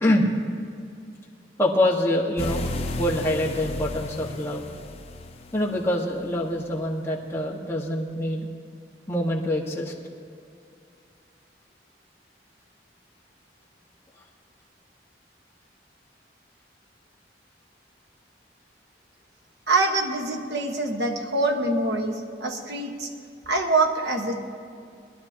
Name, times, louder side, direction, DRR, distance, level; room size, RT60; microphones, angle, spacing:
voice 1, 1.6-2.7 3.0-4.7 5.5-8.4 9.1-9.9, left 1 dB, 15° left, -3 dB, 1.5 m, -25 dB
sound 1, 2.4-5.9, left 2 dB, 35° left, 0.7 m, -33 dB
voice 2, 19.7-23.1 23.5-24.4, right 2 dB, 70° right, 2 dB, 1.4 m, -25 dB
22.0 x 11.5 x 2.9 m, 2.4 s
head